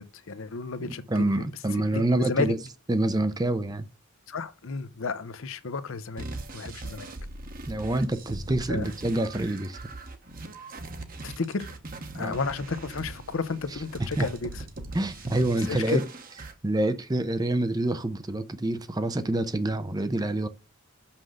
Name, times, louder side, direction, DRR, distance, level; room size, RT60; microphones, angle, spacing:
voice 1, 0.0-1.3 1.9-2.5 4.3-6.3 6.5-7.1 8.7-8.9 11.2-11.7 12.1-14.6 15.7-16.0, left 4 dB, 60° left, 0.7 m, -32 dB
voice 2, 0.8-2.6 2.9-3.9 7.7-9.8 12.2-12.4 14.2-14.3 14.9-16.0 16.6-20.5, right 1 dB, 15° right, 0.5 m, -27 dB
sound 1, 6.2-16.5, right 2 dB, 40° right, 0.9 m, -40 dB
6.5 x 5.7 x 6.4 m
head